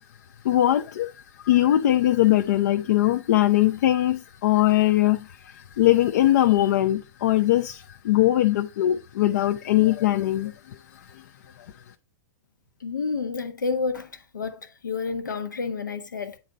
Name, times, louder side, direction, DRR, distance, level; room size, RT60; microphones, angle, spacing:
voice 1, 0.4-1.1 1.4-10.8, left 14 dB, 65° left, 0.6 m, -21 dB
voice 2, 12.8-14.1 14.3-16.4, left 4 dB, 85° left, 1.2 m, -29 dB
8.9 x 4.1 x 4.0 m
hypercardioid pair, 110°, 10 cm